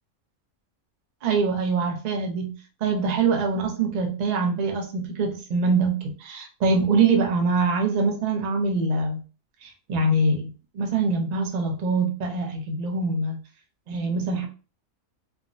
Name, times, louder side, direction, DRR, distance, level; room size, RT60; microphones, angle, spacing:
voice 1, 1.2-2.5 2.8-9.2 9.6-10.5 10.7-13.4 13.9-14.5, right 3 dB, 70° right, 2 dB, 0.4 m, -24 dB
3.4 x 2.0 x 2.5 m, 0.35 s
omnidirectional pair, 1.5 m